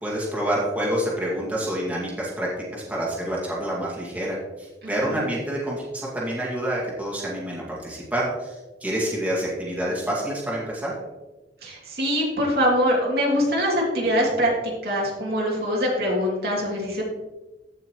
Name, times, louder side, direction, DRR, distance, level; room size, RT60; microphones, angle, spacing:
voice 1, 0.0-10.9, right 1 dB, 10° right, -5 dB, 2.0 m, -28 dB
voice 2, 4.8-5.2 11.6-17.0, equal, 60° right, -3 dB, 2.5 m, -23 dB
15.0 x 5.7 x 3.0 m, 1.1 s
head